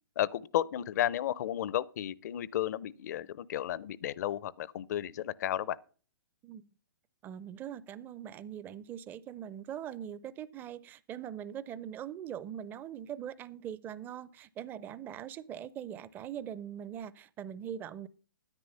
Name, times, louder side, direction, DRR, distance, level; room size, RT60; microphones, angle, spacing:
voice 1, 0.2-5.8, left 12 dB, 55° left, 0.5 m, -33 dB
voice 2, 7.2-18.1, right 9 dB, 15° right, 0.4 m, -42 dB
9.7 x 9.5 x 5.5 m
hypercardioid pair, 140°, 11 cm